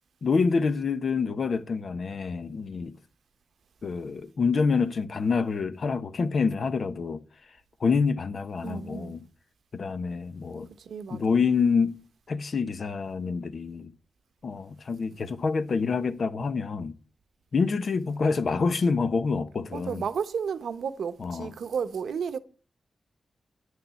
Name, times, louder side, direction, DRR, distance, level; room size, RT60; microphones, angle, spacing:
voice 1, 0.2-3.0 3.8-7.2 7.8-9.2 9.7-10.7 11.1-11.9 12.3-13.9 14.4-16.9 17.5-20.0 21.2-21.5, left 5 dB, 65° left, 1.1 m, -27 dB
voice 2, 8.6-9.2 10.8-11.4 19.7-22.4, right 6 dB, 85° right, 1.0 m, -32 dB
9.8 x 6.7 x 8.2 m
cardioid pair, 75°, 0 cm